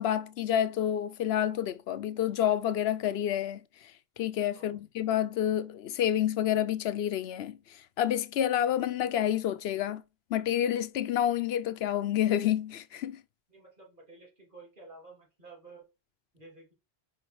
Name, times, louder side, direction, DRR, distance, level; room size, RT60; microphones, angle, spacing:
voice 1, 0.0-3.6 4.2-10.0 10.3-13.2, left 10 dB, 80° left, 0.8 m, -29 dB
voice 2, 13.5-15.8 16.3-16.7, right 3 dB, 50° right, 3.2 m, -52 dB
5.1 x 4.7 x 4.6 m
omnidirectional pair, 1.1 m